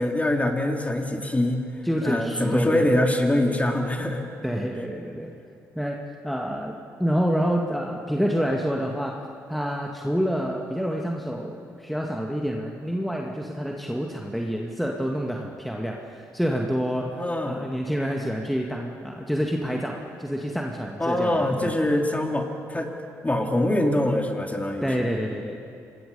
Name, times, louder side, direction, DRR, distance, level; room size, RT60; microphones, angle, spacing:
voice 1, 0.0-1.6 2.0-4.2 17.0-17.7 21.0-22.9 23.2-25.1, left 1 dB, 20° left, 3 dB, 3.1 m, -24 dB
voice 2, 1.8-2.9 4.4-5.3 5.8-17.2 17.4-21.9 24.8-25.6, equal, ahead, 0 dB, 2.1 m, -28 dB
27.0 x 21.0 x 5.5 m, 2.7 s
hypercardioid pair, 45°, 8 cm